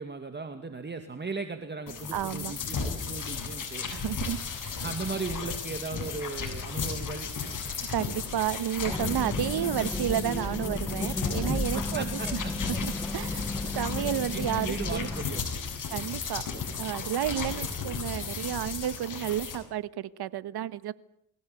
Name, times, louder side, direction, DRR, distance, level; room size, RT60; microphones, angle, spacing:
voice 1, 0.0-3.9 4.8-7.3 11.6-12.7 13.7-13.8 14.3-15.6, right 4 dB, 25° right, 7 dB, 2.3 m, -37 dB
sound 1, 1.9-19.6, left 5 dB, 45° left, 7.2 m, -35 dB
voice 2, 2.1-2.5 3.9-4.8 7.9-12.4 12.8-15.1 15.9-16.5 16.8-20.9, right 11 dB, 65° right, 16 dB, 1.4 m, -31 dB
sound 2, 8.8-15.2, left 1 dB, 5° left, 1.1 m, -34 dB
24.5 x 17.0 x 9.3 m, 0.73 s
cardioid pair, 90°, 42 cm